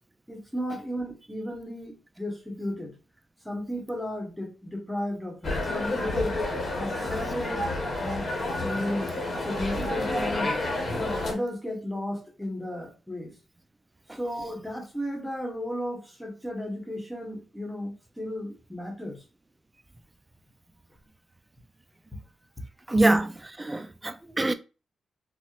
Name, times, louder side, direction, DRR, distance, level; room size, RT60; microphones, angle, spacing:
voice 1, 0.3-2.9 3.4-6.4 6.8-7.7 8.0-8.3 8.6-10.5 10.9-13.3 14.1-19.2, left 1 dB, 5° left, 1.0 m, -34 dB
sound 1, 5.4-11.3, left 2 dB, 45° left, 0.9 m, -30 dB
voice 2, 22.9-24.5, right 2 dB, 15° right, 0.3 m, -24 dB
4.3 x 2.0 x 2.4 m
cardioid pair, 110°, 0 cm